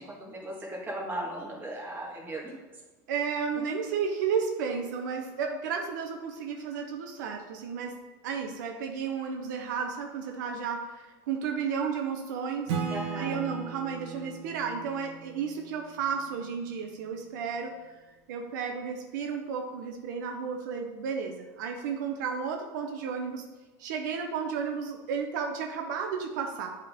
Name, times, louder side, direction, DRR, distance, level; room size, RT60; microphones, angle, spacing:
voice 1, 0.0-2.5 12.9-13.4, right 1 dB, 20° right, -3 dB, 1.6 m, -37 dB
voice 2, 3.1-8.0 8.2-12.7 13.2-17.7 18.3-23.4 23.8-26.8, right 6 dB, 75° right, 3 dB, 0.7 m, -33 dB
Acoustic guitar / Strum, 12.7-16.2, right 6 dB, 55° right, 1.3 m, -37 dB
8.3 x 3.7 x 3.6 m, 1.3 s
supercardioid pair, 135°, 10 cm